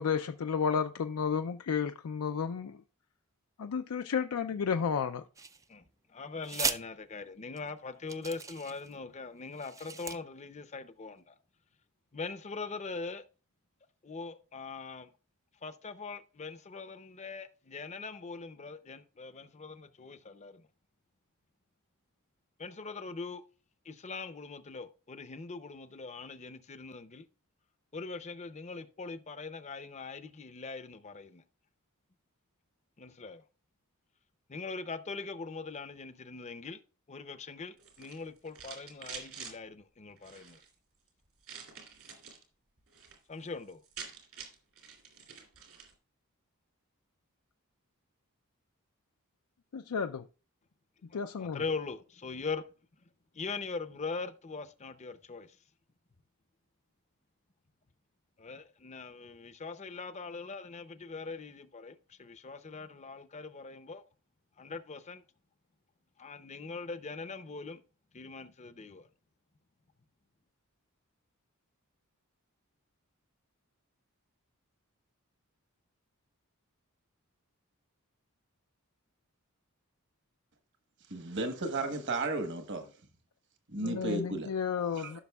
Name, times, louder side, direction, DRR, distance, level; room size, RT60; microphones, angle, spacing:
voice 1, 0.0-2.8 3.6-5.2 49.7-50.3 51.1-51.6 83.8-85.2, left 6 dB, 75° left, 0.4 m, -32 dB
sound 1, 5.4-5.9 6.4-6.8 7.6-7.7 8.1-8.9 9.5-10.2, right 5 dB, 15° right, 0.3 m, -36 dB
voice 2, 6.1-11.4 12.1-13.2 14.0-15.1 15.6-20.7 22.6-23.4 23.8-27.2 27.9-31.4 33.0-33.4 34.5-36.8 37.1-40.6 43.3-43.8 51.1-52.6 53.3-55.6 58.4-64.0 64.6-65.2 66.2-67.8 68.1-69.1, left 4 dB, 30° left, 0.6 m, -41 dB
sound 2, 37.8-39.5 40.2-40.7 41.4-42.4 42.8-43.2 43.4-43.5 43.7-45.9, right 6 dB, 70° right, 2.8 m, -47 dB
voice 3, 81.1-82.9 83.7-84.5 85.0-85.2, right 2 dB, 55° right, 1.2 m, -34 dB
15.0 x 6.1 x 2.3 m
head